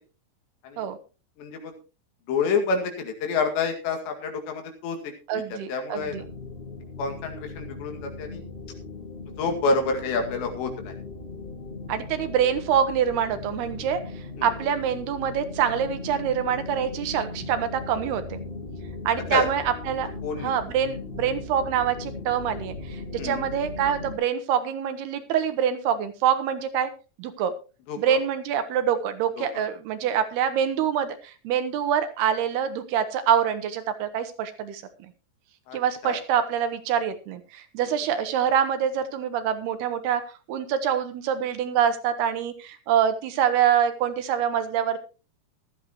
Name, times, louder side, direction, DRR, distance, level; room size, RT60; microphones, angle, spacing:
voice 1, 1.4-1.8 2.3-5.1 5.5-6.3 7.0-8.4 9.4-10.9 14.4-14.5 19.3-19.5 20.2-20.5 23.2-23.5 27.9-28.2 29.4-29.6 35.7-36.2, left 4 dB, 90° left, 4 dB, 4.4 m, -28 dB
voice 2, 5.3-6.2 11.9-14.0 14.4-18.4 19.1-20.1 20.4-26.9 27.2-27.5 28.0-34.8 35.7-40.2 40.5-45.0, right 8 dB, 75° right, 10 dB, 2.9 m, -25 dB
sound 1, 5.9-24.1, left 3 dB, 60° left, 0.5 m, -38 dB
16.0 x 12.5 x 3.0 m, 0.32 s
omnidirectional pair, 4.8 m